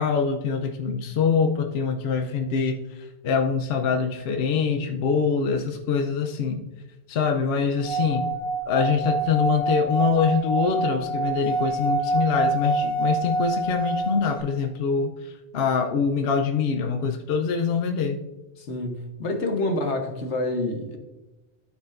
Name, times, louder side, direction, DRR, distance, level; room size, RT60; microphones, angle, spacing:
voice 1, 0.0-6.6 7.1-8.2 8.7-18.2, left 6 dB, 65° left, 4 dB, 0.9 m, -24 dB
Singing / Glass, 7.8-14.4, right 3 dB, 10° left, 1.3 m, -26 dB
voice 2, 18.6-21.0, left 2 dB, 80° left, 4 dB, 1.4 m, -27 dB
12.5 x 4.9 x 2.5 m, 1.0 s
omnidirectional pair, 1.2 m